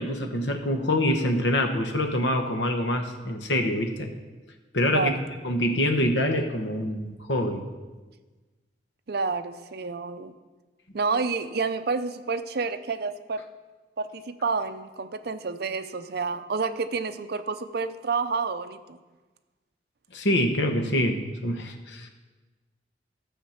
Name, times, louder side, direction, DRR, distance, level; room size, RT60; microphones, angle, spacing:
voice 1, 0.0-4.1 4.7-5.1 5.4-7.6 20.1-22.1, left 1 dB, 90° left, 5 dB, 1.2 m, -25 dB
voice 2, 4.9-5.2 9.1-10.3 10.9-13.4 14.0-19.0, right 4 dB, 60° right, 9 dB, 0.6 m, -29 dB
12.5 x 7.2 x 5.9 m, 1.3 s
head